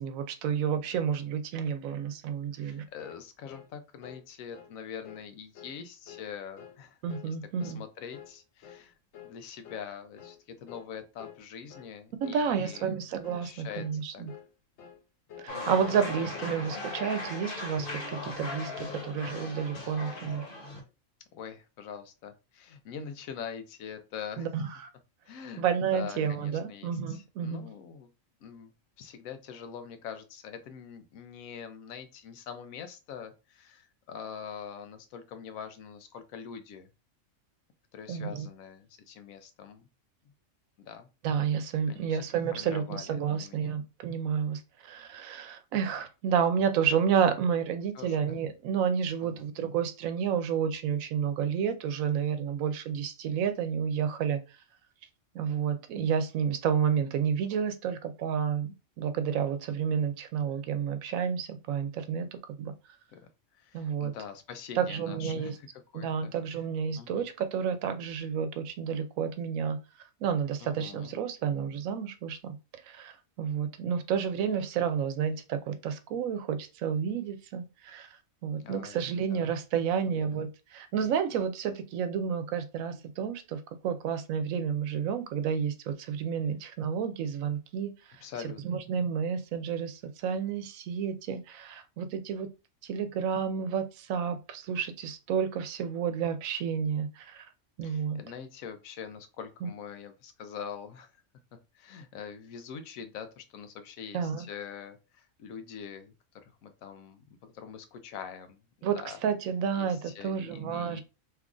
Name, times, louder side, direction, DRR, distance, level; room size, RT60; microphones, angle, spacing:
voice 1, 0.0-2.8 7.0-7.8 12.2-14.3 15.4-20.4 24.4-24.9 25.6-27.7 38.1-38.5 41.2-54.4 55.3-62.7 63.7-64.1 64.8-65.5 65.9-69.8 70.2-72.6 72.8-78.1 78.4-88.2 88.6-92.5 92.8-97.4 97.8-98.2 99.6-99.7 104.1-104.5 108.8-109.0 109.2-111.0, right 7 dB, 90° right, 9 dB, 1.0 m, -30 dB
voice 2, 2.6-7.0 7.2-9.0 9.2-13.0 13.4-13.9 14.1-14.2 16.4-16.6 21.3-24.5 25.2-28.1 28.4-28.7 29.0-36.9 37.9-39.9 40.8-41.1 41.9-42.2 42.5-43.8 47.9-48.4 49.2-49.5 63.1-63.2 63.5-65.7 65.9-66.3 67.0-67.3 70.6-71.2 78.6-79.0 79.3-79.5 80.1-80.4 88.2-88.8 97.8-101.1 101.5-106.1 106.4-109.2 109.7-111.0, left 7 dB, 90° left, 8 dB, 1.0 m, -44 dB
sound 1, 3.0-3.2 3.5-3.7 4.0-4.2 4.5-4.8 5.0-5.3 5.6-5.8 6.1-6.3 6.6-6.8 7.1-7.3 7.6-7.8 8.1-8.4 8.6-8.9 9.1-9.4 9.6-9.9 10.2-10.4 10.7-10.9 11.2-11.4 11.7-11.9 12.2-12.4 12.7-12.9 13.2-13.5 13.7-14.0 14.3-14.5 14.8-15.0 15.3-15.5 15.8-16.0 16.3-16.6 16.8-17.1 17.3-17.6 17.8-18.1 18.4-18.6 18.9-19.1, left 9 dB, 65° left, 0.9 m, -49 dB
sound 2, 15.5-20.8, left 2 dB, 45° left, 1.1 m, -38 dB
3.1 x 2.3 x 3.7 m, 0.29 s
omnidirectional pair, 1.4 m